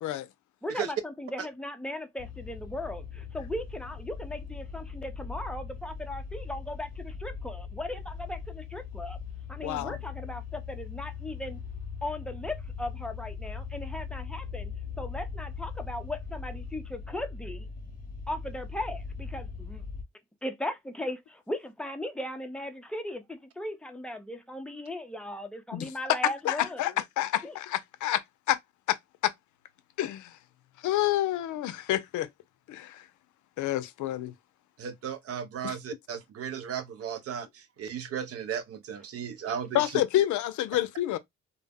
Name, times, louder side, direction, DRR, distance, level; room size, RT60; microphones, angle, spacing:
voice 1, 0.6-9.2 9.5-11.7 12.0-17.7 18.3-19.8 20.4-26.9 27.4-27.5, left 1 dB, 5° left, 0.4 m, -37 dB
sound 1, 2.2-20.0, left 5 dB, 30° left, 0.8 m, -40 dB
voice 2, 9.6-10.0 25.7-25.9 26.5-28.6 28.9-29.0 29.2-29.3 30.0-30.4 30.8-32.3 32.7-33.1 33.6-34.3 35.6-35.7 39.7-41.2, left 14 dB, 75° left, 0.5 m, -28 dB
voice 3, 34.8-40.0, right 8 dB, 50° right, 0.5 m, -35 dB
2.0 x 2.0 x 3.4 m
cardioid pair, 90°, 30 cm